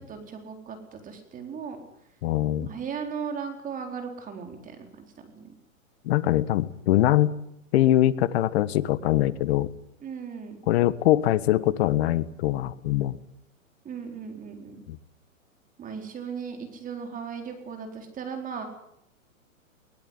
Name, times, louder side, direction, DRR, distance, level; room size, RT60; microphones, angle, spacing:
voice 1, 0.0-1.8 2.6-5.5 10.0-10.6 13.8-14.8 15.8-18.7, right 6 dB, 20° right, 5 dB, 4.0 m, -37 dB
voice 2, 2.2-2.7 6.0-7.4 7.7-9.7 10.7-13.2 14.9-15.0, left 13 dB, 50° left, 16 dB, 1.5 m, -23 dB
21.5 x 19.5 x 9.6 m, 0.76 s
hypercardioid pair, 130°, 41 cm